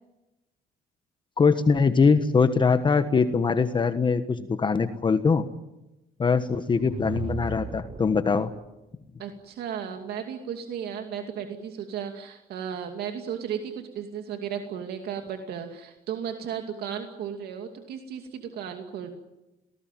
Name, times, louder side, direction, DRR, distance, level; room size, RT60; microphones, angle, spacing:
voice 1, 1.4-5.5 6.2-8.5, left 5 dB, 30° left, 10 dB, 1.3 m, -22 dB
sound 1, 6.5-8.6, right 5 dB, 30° right, 1.3 m, -37 dB
voice 2, 9.2-19.1, right 8 dB, 70° right, 5 dB, 2.5 m, -35 dB
27.0 x 19.0 x 9.2 m, 0.97 s
cardioid pair, 110°, 17 cm